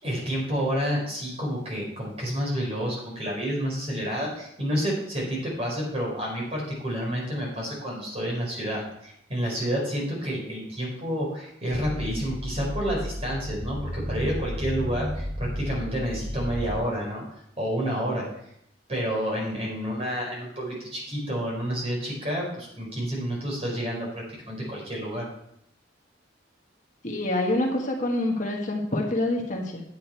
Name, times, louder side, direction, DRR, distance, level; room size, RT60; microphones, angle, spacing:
voice 1, 0.0-17.2 17.6-18.2 18.9-25.3, equal, 35° right, -3 dB, 4.5 m, -29 dB
sound 1, 11.7-16.8, equal, 5° right, 1.0 m, -33 dB
voice 2, 27.0-29.8, left 1 dB, 45° left, 0 dB, 1.4 m, -26 dB
9.6 x 8.5 x 4.5 m, 0.73 s
head